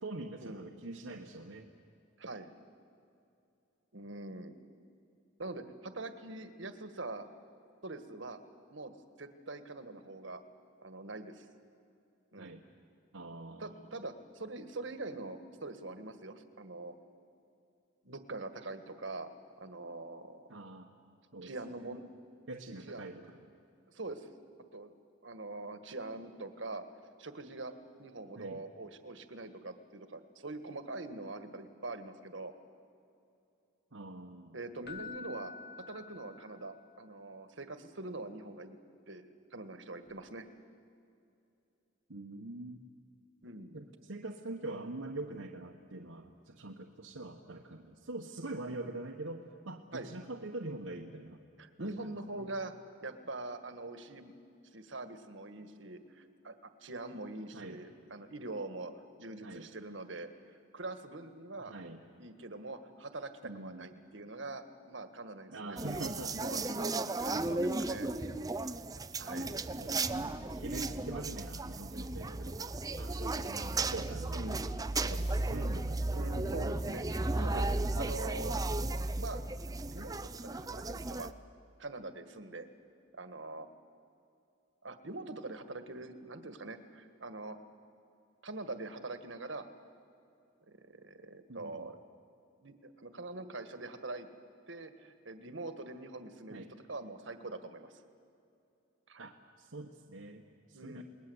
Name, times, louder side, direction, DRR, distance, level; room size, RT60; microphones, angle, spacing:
voice 1, 0.0-1.7 12.4-12.6 13.1-13.7 20.5-20.9 21.3-21.5 21.8-22.0 22.5-23.4 28.4-28.6 33.9-34.6 42.1-42.8 43.7-51.4 51.8-52.5 57.5-57.8 59.4-59.7 61.6-62.0 63.4-63.9 65.5-66.6 69.3-69.5 69.8-74.6 75.0-76.0 91.5-91.9 96.5-96.7 99.2-101.0, right 2 dB, 85° right, 1 dB, 1.4 m, -44 dB
voice 2, 2.2-2.5 3.9-4.6 5.4-7.3 7.8-8.4 8.7-10.4 10.8-11.4 12.3-12.5 13.6-16.9 18.0-19.3 19.6-20.4 21.4-22.0 22.8-23.1 23.9-24.3 24.7-24.9 25.2-26.8 27.2-32.5 34.5-35.5 35.9-38.8 39.1-40.5 43.4-43.8 49.9-50.1 51.6-52.7 53.0-54.3 54.7-58.9 59.2-61.7 62.2-66.9 67.2-68.1 69.2-69.6 74.3-74.6 75.5-75.8 76.1-78.6 79.2-79.4 79.9-81.3 81.8-82.7 83.1-83.7 84.8-87.6 88.4-89.6 90.7-92.0 92.6-94.3 94.7-96.6 96.9-97.9 99.1-99.3 100.7-101.0, right 2 dB, 70° right, 9 dB, 1.7 m, -43 dB
Keyboard (musical), 34.8-36.8 40.1-40.2, left 5 dB, 55° left, 1.1 m, -48 dB
sound 1, 65.8-81.3, right 2 dB, 20° right, 0.6 m, -35 dB
28.5 x 20.5 x 8.0 m, 2.7 s
head